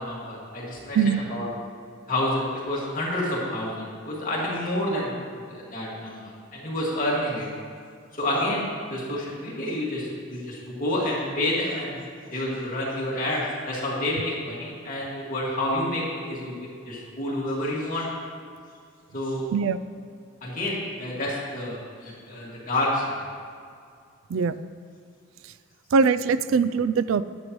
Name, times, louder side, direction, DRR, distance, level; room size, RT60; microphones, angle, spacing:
voice 1, 0.0-1.5 2.1-5.2 5.5-7.5 8.1-12.0 12.3-18.1 19.1-19.4 20.4-23.2, left 1 dB, 40° left, -5 dB, 2.1 m, -29 dB
voice 2, 19.5-19.8 24.3-24.5 25.9-27.2, right 5 dB, 75° right, 14 dB, 0.3 m, -22 dB
11.0 x 9.0 x 3.1 m, 2.2 s
head